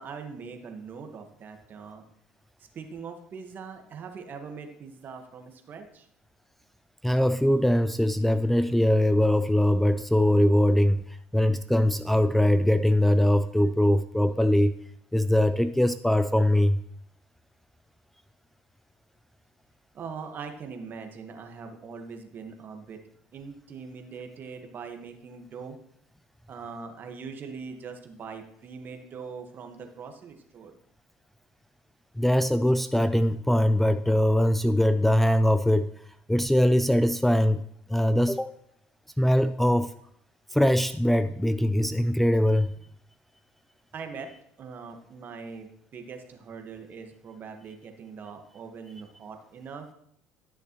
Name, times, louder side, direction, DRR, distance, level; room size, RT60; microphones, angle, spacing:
voice 1, 0.0-2.0 2.7-6.1 19.9-23.0 23.3-25.8 26.5-30.7 43.9-44.3 44.6-49.9, right 5 dB, 45° right, 5 dB, 1.3 m, -41 dB
voice 2, 7.0-14.8 15.1-16.8 32.2-35.9 36.3-37.6 37.9-38.5 39.2-39.9 40.5-42.7, left 1 dB, 5° left, 11 dB, 0.4 m, -22 dB
12.0 x 6.6 x 3.0 m, 0.71 s
supercardioid pair, 85°, 4 cm